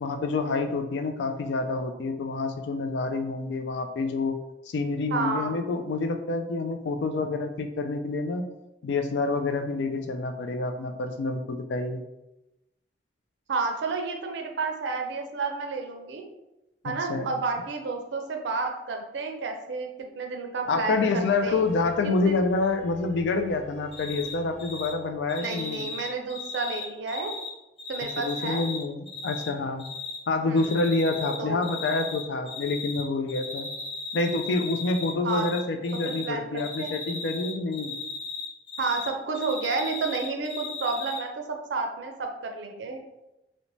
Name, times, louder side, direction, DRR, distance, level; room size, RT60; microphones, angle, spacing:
voice 1, 0.0-4.4 4.7-8.5 8.8-12.0 16.9-17.3 20.7-25.9 28.2-29.8 30.3-33.7 34.1-37.9, left 3 dB, 75° left, 7 dB, 0.3 m, -27 dB
voice 2, 5.1-5.5 13.5-16.2 16.8-19.9 20.1-21.6 22.2-22.4 25.4-27.3 27.9-28.6 30.4-30.7 31.4-31.7 35.2-35.5 36.0-37.0 38.8-43.0, right 4 dB, 85° right, 4 dB, 0.4 m, -31 dB
sound 1, 20.6-25.8, right 1 dB, 50° left, 1.2 m, -50 dB
Cricket, 23.9-24.3 24.6-24.9 25.3-27.5 27.8-29.5 29.8-30.2 30.6-31.4 31.6-33.0 33.3-35.6 35.8-36.2 36.6-39.1 39.3-41.2, left 5 dB, 30° left, 1.0 m, -36 dB
2.6 x 2.1 x 3.0 m, 0.94 s
head